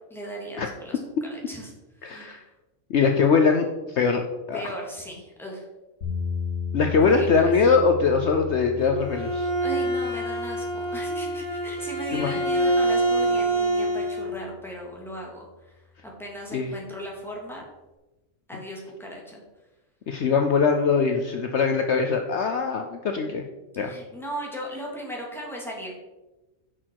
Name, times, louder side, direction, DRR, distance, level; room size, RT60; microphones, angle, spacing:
voice 1, 0.1-1.7 2.0-2.4 4.5-5.7 7.0-7.4 9.6-17.6 18.5-19.4 23.8-25.9, right 1 dB, ahead, -2 dB, 2.4 m, -37 dB
voice 2, 2.0-2.4 2.9-4.2 4.5-4.6 6.7-9.5 12.1-12.4 16.5-16.7 20.1-23.4 23.8-23.9, left 5 dB, 60° left, 5 dB, 1.0 m, -22 dB
sound 1, 6.0-14.1, left 5 dB, 90° left, 2.1 m, -36 dB
Bowed string instrument, 8.8-14.3, right 1 dB, 25° right, 2.7 m, -26 dB
10.0 x 6.3 x 4.7 m, 1.1 s
omnidirectional pair, 1.4 m